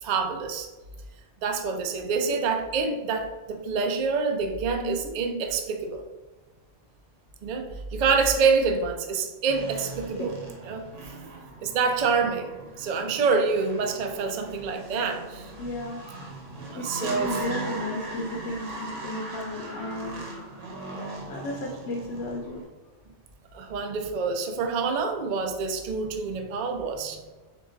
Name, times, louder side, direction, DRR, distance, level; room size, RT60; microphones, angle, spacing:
voice 1, 0.0-0.7 1.4-6.0 7.4-10.4 10.6-10.9 11.6-12.5 12.8-15.5 16.7-17.4 23.5-27.2, right 5 dB, 60° right, 5 dB, 0.4 m, -27 dB
voice 2, 4.8-5.2 10.2-10.3 11.2-11.3 15.6-16.0 16.7-20.3 20.9-22.6, left 1 dB, 75° left, 0 dB, 1.0 m, -34 dB
sound 1, 9.5-22.6, right 2 dB, 85° right, 1.2 m, -39 dB
4.0 x 2.8 x 3.7 m, 1.2 s
omnidirectional pair, 1.2 m